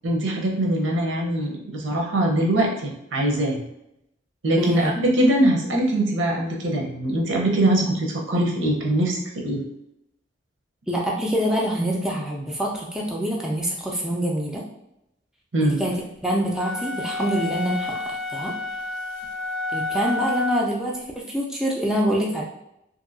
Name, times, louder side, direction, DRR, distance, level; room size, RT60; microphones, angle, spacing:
voice 1, 0.0-3.7 4.4-9.6 15.5-15.8, right 1 dB, 85° right, -1 dB, 0.7 m, -22 dB
voice 2, 4.6-4.9 10.9-14.6 15.6-16.0 16.2-18.5 19.7-22.4, right 1 dB, 5° right, -3 dB, 0.3 m, -25 dB
sound 1, 16.5-20.8, left 3 dB, 85° left, 0.4 m, -29 dB
2.8 x 2.6 x 2.6 m, 0.84 s
head